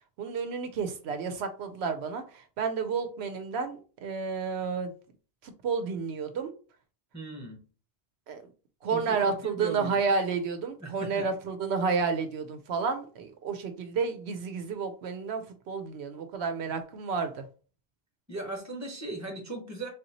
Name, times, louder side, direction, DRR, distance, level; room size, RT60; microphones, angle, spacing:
voice 1, 0.2-4.9 5.4-6.5 8.3-8.4 8.8-17.5, right 5 dB, 80° right, 0.8 m, -31 dB
voice 2, 7.1-7.6 8.9-9.9 10.8-11.2 18.3-19.9, right 2 dB, 15° right, 1.0 m, -38 dB
3.7 x 2.7 x 2.9 m
omnidirectional pair, 1.1 m